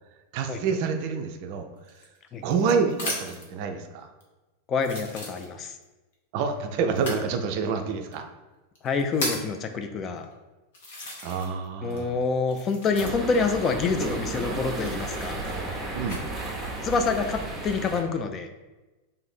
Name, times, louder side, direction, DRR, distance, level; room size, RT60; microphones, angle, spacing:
voice 1, 0.3-2.0 2.4-4.1 6.3-8.2 11.2-12.1 15.9-16.2, right 5 dB, 45° right, 6 dB, 0.4 m, -28 dB
sound 1, 1.8-3.5 4.2-4.3 4.8-5.8 6.9-7.3 8.1-8.2 8.8-9.6 10.2-10.3 10.7-11.6 11.9-13.4 14.7-16.2 16.9-17.4, left 1 dB, 60° left, 0.8 m, -36 dB
voice 2, 4.7-5.8 8.8-10.3 11.8-15.4 16.8-18.5, left 4 dB, 30° left, 6 dB, 0.3 m, -27 dB
sound 2, 13.0-18.0, right 2 dB, 15° right, 0.7 m, -33 dB
2.6 x 2.6 x 4.2 m, 1.1 s
figure-of-eight pair, 90°, 0 cm